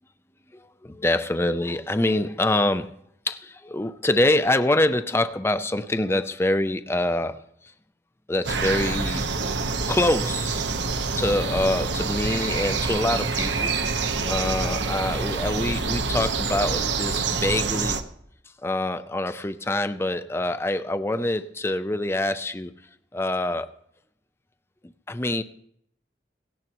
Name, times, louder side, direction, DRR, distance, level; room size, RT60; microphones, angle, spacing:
voice 1, 0.8-3.0 3.3-7.4 8.3-9.2 9.9-10.7 11.2-13.7 14.2-18.0 18.6-22.7 23.1-23.7 25.1-25.4, left 1 dB, 15° left, 11 dB, 0.5 m, -25 dB
sound 1, 8.4-18.0, right 4 dB, 75° right, 1.1 m, -26 dB
17.5 x 17.5 x 3.0 m, 0.72 s
head